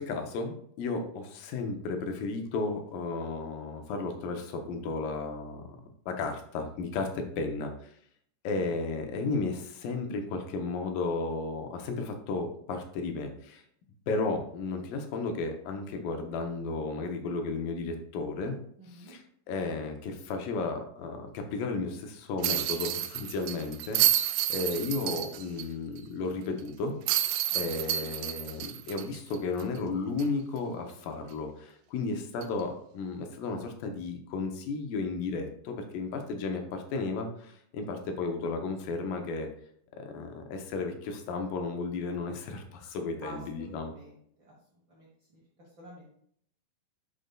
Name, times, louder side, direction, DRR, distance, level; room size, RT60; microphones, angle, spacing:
voice 1, 0.0-5.7 6.1-7.9 8.4-13.6 14.1-18.6 19.0-26.9 27.5-39.5 40.0-43.9, left 3 dB, 80° left, 5 dB, 2.6 m, -34 dB
voice 2, 18.8-19.1 27.8-28.1 43.2-45.4 45.8-46.1, equal, 50° right, -4 dB, 1.4 m, -49 dB
sound 1, 22.4-25.6 26.0-26.1 27.1-29.8 30.2-30.3 32.4-32.6, right 13 dB, 80° right, 1.9 m, -29 dB
10.5 x 5.1 x 2.3 m, 0.65 s
omnidirectional pair, 3.9 m